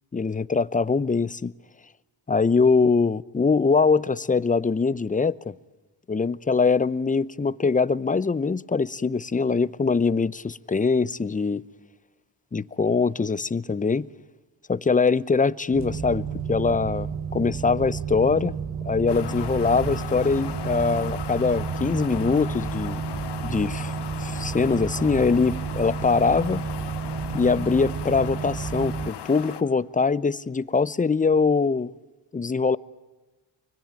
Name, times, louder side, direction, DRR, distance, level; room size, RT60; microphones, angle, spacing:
voice 1, 0.1-1.5 2.3-5.5 6.1-11.6 12.5-14.1 14.7-18.6 18.8-23.0 23.4-23.9 24.2-26.6 27.3-31.9 32.3-32.8, left 4 dB, 20° left, 0.7 m, -23 dB
sound 1, 15.7-29.1, right 6 dB, 40° right, 1.3 m, -31 dB
sound 2, 19.1-29.6, left 9 dB, 65° left, 1.6 m, -37 dB
24.5 x 21.0 x 8.9 m
cardioid pair, 70°, 44 cm